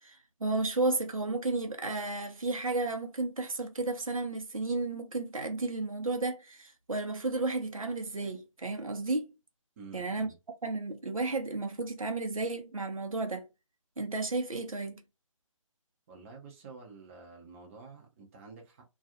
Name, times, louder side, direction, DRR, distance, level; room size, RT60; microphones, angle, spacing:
voice 1, 0.0-9.3 9.9-10.3 10.6-13.4 14.0-15.0, right 3 dB, 80° right, 0.8 m, -33 dB
voice 2, 9.8-10.3 16.1-18.8, right 4 dB, 25° right, 0.7 m, -49 dB
2.4 x 2.3 x 2.7 m
figure-of-eight pair, 145°, 17 cm